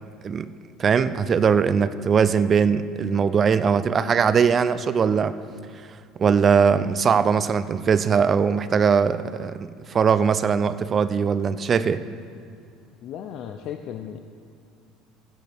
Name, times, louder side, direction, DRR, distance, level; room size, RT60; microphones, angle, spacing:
voice 1, 0.8-5.4 6.2-12.0, right 6 dB, 25° right, 14 dB, 0.3 m, -20 dB
voice 2, 13.0-14.2, left 9 dB, 45° left, 6 dB, 0.4 m, -35 dB
14.5 x 10.0 x 3.4 m, 2.3 s
cardioid pair, 165°, 0 cm